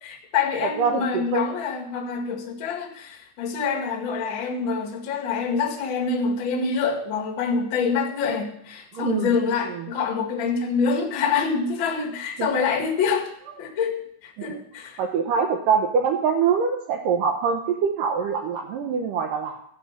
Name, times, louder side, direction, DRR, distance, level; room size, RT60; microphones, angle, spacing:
voice 1, 0.0-13.3 13.6-15.0, left 5 dB, 50° left, 0 dB, 1.4 m, -26 dB
voice 2, 0.8-1.4 8.9-9.3 9.7-9.9 12.4-12.5 14.4-14.6 15.0-19.6, right 6 dB, 80° right, 1 dB, 2.0 m, -24 dB
14.0 x 5.4 x 7.3 m, 0.71 s
omnidirectional pair, 5.0 m